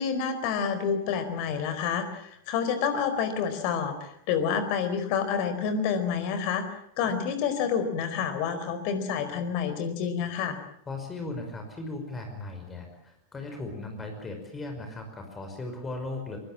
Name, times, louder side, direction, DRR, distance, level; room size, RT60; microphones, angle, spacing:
voice 1, 0.0-6.6 7.0-10.6, left 7 dB, 45° left, 11 dB, 4.4 m, -28 dB
voice 2, 10.9-16.4, left 2 dB, 15° left, 4 dB, 5.5 m, -37 dB
24.0 x 23.5 x 7.6 m, 0.69 s
figure-of-eight pair, 90°, 0 cm